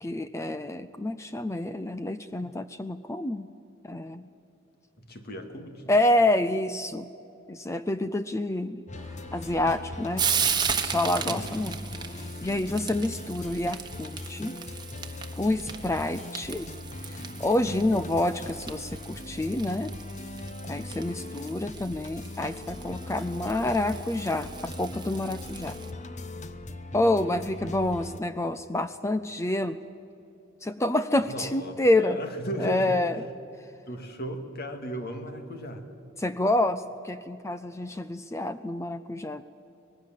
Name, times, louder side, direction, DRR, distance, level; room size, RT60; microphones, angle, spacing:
voice 1, 0.0-3.5 3.8-4.2 5.9-7.1 7.5-8.8 9.3-10.2 10.8-11.8 12.1-14.6 15.4-16.7 17.1-19.9 20.7-25.8 26.9-29.8 30.6-32.2 32.6-33.2 36.2-39.4, left 1 dB, 15° left, 12 dB, 0.5 m, -28 dB
voice 2, 5.0-5.9 11.2-11.7 31.3-33.1 33.9-35.9, right 1 dB, 50° left, 6 dB, 2.2 m, -36 dB
sound 1, 8.9-28.2, left 2 dB, 35° left, 1.0 m, -40 dB
Frying (food), 9.0-25.9, right 6 dB, 20° right, 1.4 m, -36 dB
25.5 x 19.0 x 7.6 m, 2.8 s
head